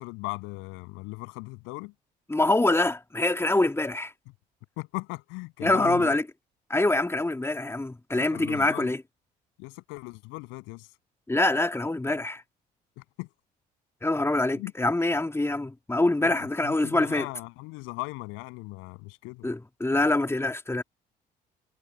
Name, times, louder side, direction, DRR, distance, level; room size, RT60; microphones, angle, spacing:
voice 1, 0.0-1.9 4.8-6.2 8.1-8.9 9.6-10.9 13.0-13.3 14.5-14.7 16.2-19.5, left 27 dB, 80° left, 7.7 m, -38 dB
voice 2, 2.3-4.1 5.6-6.2 6.7-9.0 11.3-12.4 14.0-17.3 19.4-20.8, left 2 dB, 10° left, 1.8 m, -25 dB
hypercardioid pair, 60°, 20 cm